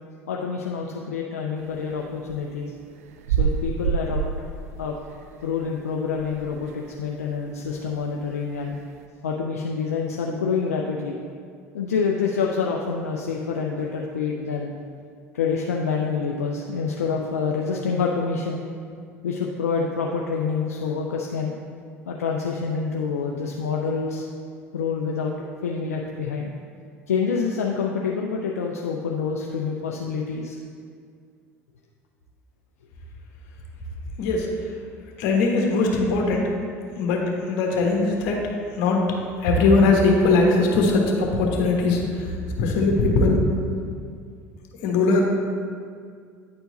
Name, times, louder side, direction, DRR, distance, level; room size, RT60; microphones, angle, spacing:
voice 1, 0.3-2.7 3.4-4.2 4.8-4.9 5.4-8.8 9.2-11.2 11.7-14.7 15.3-18.6 19.2-21.5 22.1-24.2 24.7-25.3 25.6-26.5 27.1-30.6, left 5 dB, 90° left, -1 dB, 0.4 m, -27 dB
sound 1, 1.6-6.9 7.3-7.4 7.6-9.0, right 7 dB, 80° right, 0.4 m, -28 dB
voice 2, 35.2-36.5 37.0-38.4 38.8-39.1 39.4-42.0 42.6-43.4 44.8-45.2, left 3 dB, 65° left, 0 dB, 1.3 m, -20 dB
9.4 x 4.5 x 4.0 m, 2.2 s
hypercardioid pair, 70°, 8 cm